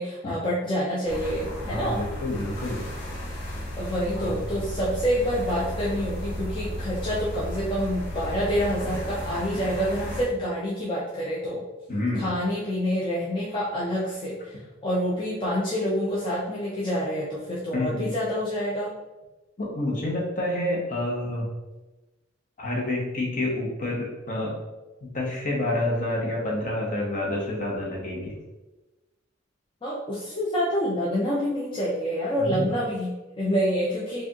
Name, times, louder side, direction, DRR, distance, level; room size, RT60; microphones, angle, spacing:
voice 1, 0.0-2.0 3.8-11.6 12.2-18.9 29.8-34.2, equal, 25° left, -7 dB, 0.6 m, -27 dB
sound 1, 1.1-10.2, equal, 80° left, 1.1 m, -34 dB
voice 2, 1.7-2.8 4.1-4.4 11.9-12.4 17.7-18.1 19.6-21.5 22.6-24.6 25.1-28.4 32.4-32.7, left 1 dB, 45° left, -3 dB, 1.1 m, -28 dB
4.8 x 2.5 x 2.9 m, 1.1 s
head